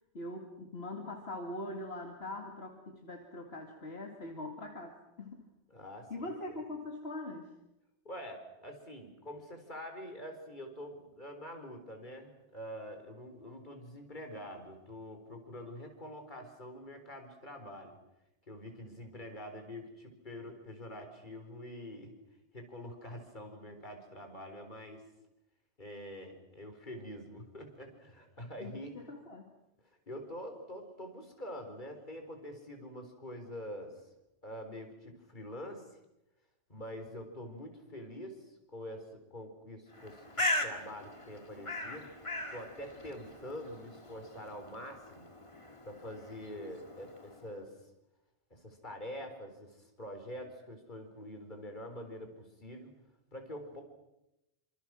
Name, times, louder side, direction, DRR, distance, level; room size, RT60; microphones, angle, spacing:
voice 1, 0.1-5.5 6.1-7.5 28.6-29.5, left 2 dB, 65° left, 2 dB, 2.6 m, -42 dB
voice 2, 5.7-6.6 8.0-18.0 18.5-22.1 22.5-25.0 25.8-29.1 30.1-33.9 34.4-35.8 36.7-42.1 42.5-45.3 45.8-47.7 48.5-52.9 53.3-53.8, equal, 45° left, 4 dB, 4.5 m, -45 dB
Bird, 39.9-47.5, left 1 dB, 25° left, 2.3 m, -39 dB
27.0 x 26.5 x 6.3 m, 0.90 s
omnidirectional pair, 1.2 m